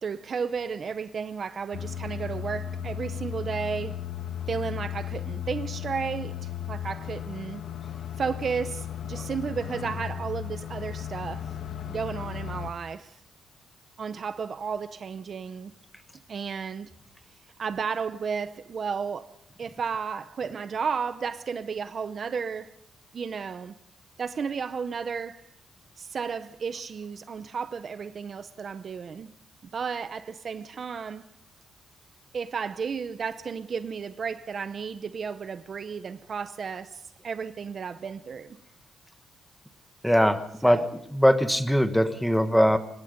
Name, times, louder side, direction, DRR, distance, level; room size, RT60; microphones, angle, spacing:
voice 1, 0.0-4.0 4.5-7.6 8.2-11.6 11.9-13.2 14.0-15.7 16.3-16.9 17.6-19.3 19.6-22.7 23.1-23.7 24.2-25.5 26.0-29.3 29.7-31.3 32.3-38.6 40.6-40.9, right 6 dB, 40° right, 0.7 m, -33 dB
sound 1, 1.7-12.7, left 9 dB, 60° left, 1.5 m, -35 dB
voice 2, 40.0-40.8 41.1-42.8, equal, ahead, 1.3 m, -21 dB
25.0 x 20.5 x 5.2 m
cardioid pair, 150°, 0 cm